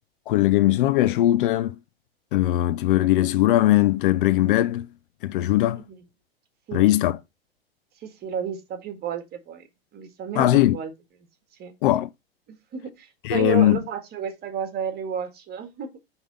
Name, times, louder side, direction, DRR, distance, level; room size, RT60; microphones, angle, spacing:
voice 1, 0.3-1.8 2.3-4.9 5.2-5.8 6.7-7.2 10.4-10.8 11.8-12.1 13.2-13.8, left 14 dB, 60° left, 0.5 m, -20 dB
voice 2, 8.0-9.6 9.9-10.9 11.6-11.7 12.5-15.9, right 7 dB, 30° right, 1.8 m, -32 dB
5.9 x 3.8 x 5.3 m
hypercardioid pair, 100°, 31 cm